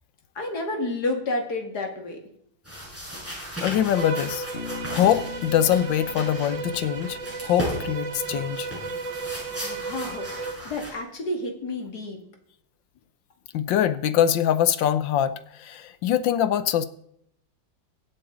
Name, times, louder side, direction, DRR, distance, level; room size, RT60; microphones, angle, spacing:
voice 1, 0.3-2.2 9.6-12.2, left 2 dB, 60° left, 3 dB, 2.8 m, -30 dB
sound 1, 2.6-10.9, equal, 5° right, 7.0 m, -37 dB
voice 2, 3.6-4.4 4.9-8.7 13.5-15.3 15.6-16.8, left 10 dB, 85° left, 12 dB, 1.5 m, -23 dB
Bowed string instrument, 3.9-10.7, right 4 dB, 80° right, 2.3 m, -34 dB
Bass guitar, 4.5-8.4, left 6 dB, 40° left, 1.0 m, -41 dB
23.5 x 8.3 x 3.9 m, 0.72 s
omnidirectional pair, 2.0 m